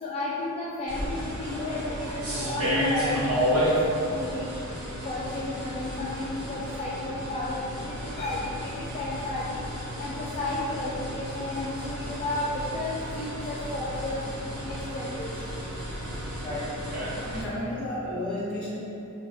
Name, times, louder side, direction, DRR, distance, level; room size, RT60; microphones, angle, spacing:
voice 1, 0.0-3.7 4.1-4.6 5.0-9.6 10.0-12.5 12.7-14.2 14.6-15.5, left 2 dB, 25° left, -7 dB, 0.3 m, -33 dB
sound 1, 0.9-17.4, equal, 80° right, 0.8 m, -32 dB
voice 2, 17.2-18.8, left 1 dB, 5° left, -11 dB, 1.3 m, -32 dB
4.9 x 2.3 x 2.2 m, 2.7 s
head